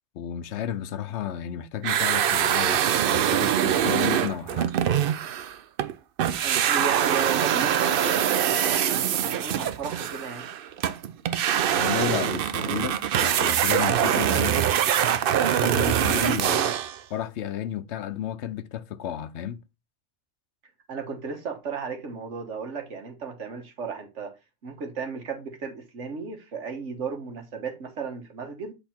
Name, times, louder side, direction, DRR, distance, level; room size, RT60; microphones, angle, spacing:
voice 1, 0.1-2.8 3.1-4.7 11.8-14.7 15.6-16.7 17.1-19.6, left 10 dB, 70° left, 0.9 m, -32 dB
sound 1, 1.8-5.9 6.2-17.0, right 9 dB, 60° right, 0.6 m, -24 dB
voice 2, 6.4-10.5 16.4-16.7 20.9-24.3 24.6-28.7, right 5 dB, 80° right, 1.5 m, -35 dB
8.1 x 3.4 x 4.3 m
omnidirectional pair, 1.2 m